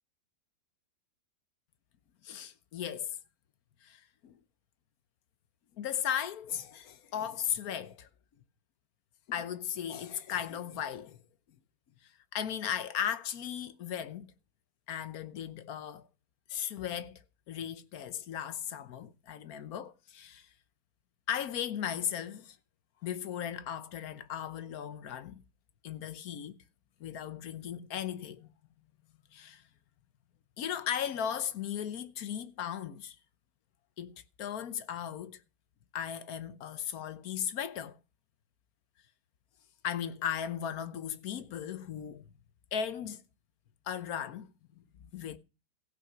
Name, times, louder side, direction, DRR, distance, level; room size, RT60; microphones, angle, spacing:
voice 1, 2.2-3.2 3.8-4.4 5.8-8.1 9.3-11.2 12.3-14.3 14.9-16.1 16.5-17.1 17.5-20.5 21.3-22.6 23.0-25.4 25.8-26.6 27.0-28.5 29.3-29.6 30.6-33.2 34.0-35.4 35.9-38.0 39.8-42.3 42.7-43.2 43.9-45.4, left 9 dB, 65° left, 1.2 m, -37 dB
15.5 x 5.7 x 6.0 m
omnidirectional pair, 1.8 m